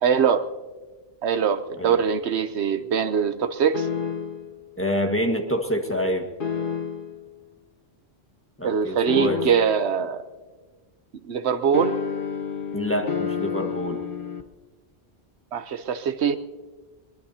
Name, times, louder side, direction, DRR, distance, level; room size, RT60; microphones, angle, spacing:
voice 1, 0.0-0.5 1.2-3.9 8.6-10.2 11.2-12.0 15.5-16.4, right 7 dB, 80° right, 10 dB, 1.0 m, -23 dB
sound 1, 3.7-4.5 6.4-7.2 9.1-9.9 11.7-14.4, left 6 dB, 55° left, 1.1 m, -29 dB
voice 2, 4.8-6.3 8.6-9.4 12.7-14.0, equal, 10° left, 2 dB, 1.5 m, -26 dB
22.5 x 22.5 x 2.8 m, 1.3 s
omnidirectional pair, 1.1 m